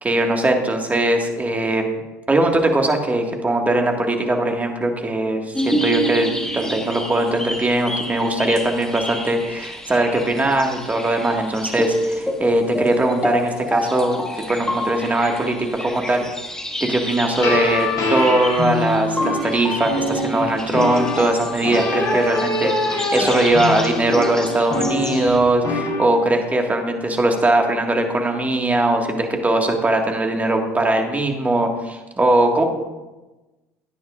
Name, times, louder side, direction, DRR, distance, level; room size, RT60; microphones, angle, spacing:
voice 1, 0.0-1.9 2.3-14.2 14.5-16.2 16.8-32.6, right 1 dB, 20° right, 3 dB, 1.8 m, -20 dB
sound 1, 5.5-25.4, equal, 5° left, 1.9 m, -29 dB
sound 2, 17.3-26.0, left 2 dB, 50° left, 3.4 m, -24 dB
15.0 x 10.0 x 2.5 m, 1.1 s
hypercardioid pair, 65°, 8 cm